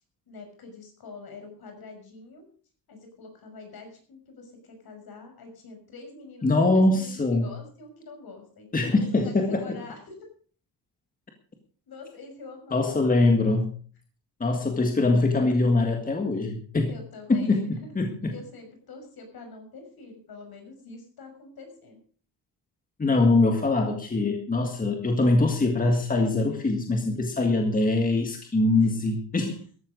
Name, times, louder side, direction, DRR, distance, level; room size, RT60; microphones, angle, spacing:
voice 1, 0.3-2.4 2.9-8.7 9.0-10.2 11.9-13.5 16.7-18.0 18.3-22.0 28.7-28.9, left 3 dB, 55° left, 5 dB, 6.1 m, -45 dB
voice 2, 6.4-7.5 8.7-9.7 12.7-13.7 14.4-16.9 17.3-17.6 17.9-18.3 23.0-29.5, left 2 dB, 20° left, 4 dB, 1.8 m, -23 dB
14.5 x 12.5 x 5.2 m, 0.43 s
cardioid pair, 170°, 44 cm